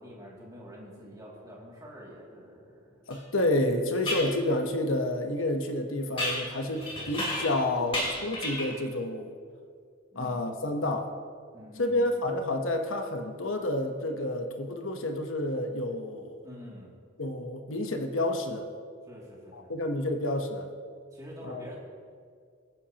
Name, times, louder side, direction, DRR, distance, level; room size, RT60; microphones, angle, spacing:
voice 1, 0.0-3.0 10.1-10.4 11.5-12.3 16.4-16.9 19.1-19.7 21.1-21.8, equal, 15° right, -4 dB, 2.6 m, -47 dB
voice 2, 3.1-9.3 10.1-11.1 11.8-16.4 17.2-18.7 19.5-20.7 21.4-21.6, left 1 dB, 70° left, 4 dB, 1.1 m, -29 dB
sound 1, 3.1-3.2 4.1-4.3 6.2-7.6 7.9-8.8, left 1 dB, 25° left, 3.0 m, -32 dB
23.5 x 10.0 x 3.0 m, 2.1 s
head